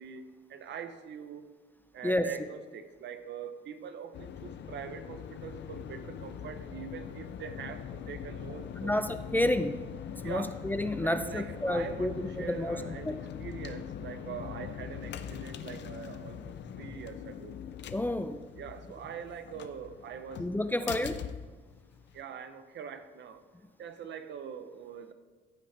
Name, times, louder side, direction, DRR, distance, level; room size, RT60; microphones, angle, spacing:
voice 1, 0.0-1.4 1.9-9.0 10.2-10.6 11.0-17.5 18.6-21.0 22.1-23.4 23.8-25.1, right 7 dB, 65° right, 10 dB, 0.8 m, -43 dB
sound 1, 4.1-22.2, left 8 dB, 65° left, 0.6 m, -42 dB
voice 2, 8.8-9.8 10.1-13.2 17.9-18.4 20.4-21.2, left 1 dB, 10° left, 10 dB, 0.4 m, -30 dB
14.5 x 5.8 x 3.3 m, 1.4 s
cardioid pair, 90°, 20 cm